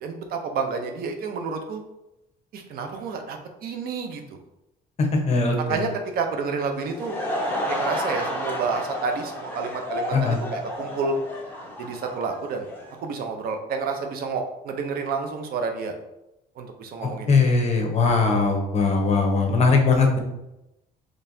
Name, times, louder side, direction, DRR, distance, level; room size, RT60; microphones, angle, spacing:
voice 1, 0.0-1.8 2.5-4.2 5.7-7.2 7.7-11.1 11.8-12.7 13.0-15.9 16.6-17.9, right 4 dB, 65° right, 4 dB, 0.6 m, -30 dB
voice 2, 5.0-5.8 10.1-10.4 17.0-20.2, left 4 dB, 40° left, 2 dB, 0.9 m, -20 dB
Laughter / Crowd, 6.7-13.0, equal, 10° left, 0.9 m, -31 dB
4.3 x 3.1 x 2.7 m, 0.90 s
cardioid pair, 110°, 17 cm